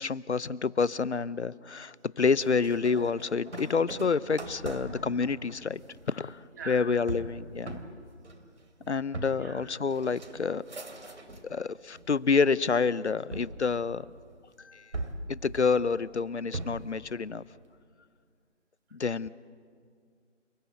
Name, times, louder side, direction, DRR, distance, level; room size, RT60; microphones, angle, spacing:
voice 1, 0.0-5.8 6.1-6.4 6.7-7.8 8.9-10.6 11.5-14.1 14.6-14.9 15.3-17.4 18.9-19.3, left 5 dB, 65° left, 20 dB, 0.8 m, -28 dB
sound 1, 2.4-11.6 11.9-12.6 13.3-14.4 14.9-17.0, right 2 dB, 70° right, 3.2 m, -41 dB
voice 2, 9.3-9.6, right 3 dB, 15° right, 1 dB, 2.5 m, -42 dB
29.5 x 19.0 x 9.0 m, 2.1 s
figure-of-eight pair, 165°, 36 cm